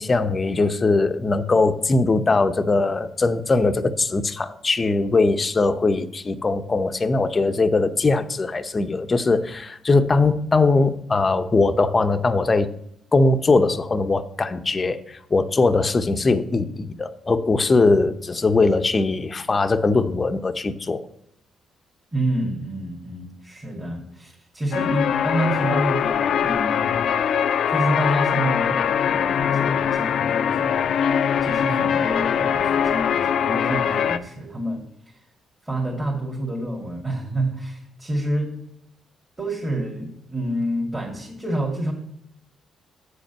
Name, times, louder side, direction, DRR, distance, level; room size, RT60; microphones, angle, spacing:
voice 1, 0.0-12.7 13.1-21.0, left 3 dB, 30° left, 9 dB, 0.7 m, -20 dB
voice 2, 22.1-27.0 27.7-30.9 31.4-35.2 35.6-38.5 39.4-41.9, right 1 dB, 20° right, -2 dB, 2.2 m, -28 dB
sound 1, 24.7-34.2, left 8 dB, 65° left, 0.5 m, -22 dB
8.3 x 5.2 x 6.8 m, 0.74 s
cardioid pair, 90°, 0 cm